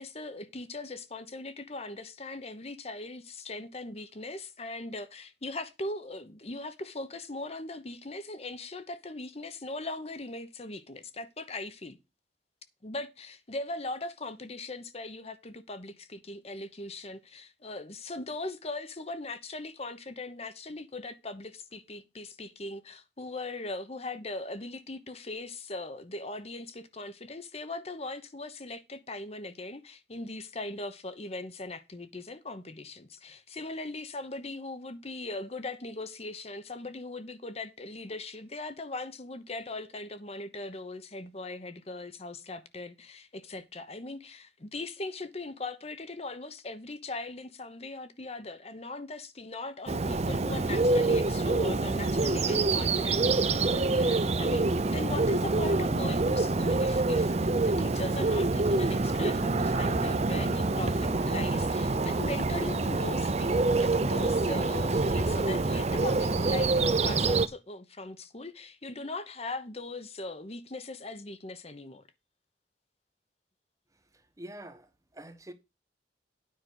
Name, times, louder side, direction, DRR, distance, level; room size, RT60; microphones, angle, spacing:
voice 1, 0.0-12.0 12.8-72.0, left 2 dB, 35° left, 1.0 m, -40 dB
Bird, 49.9-67.5, right 3 dB, 40° right, 0.6 m, -26 dB
voice 2, 74.4-75.5, right 1 dB, 20° right, 1.0 m, -45 dB
9.6 x 5.2 x 6.2 m
head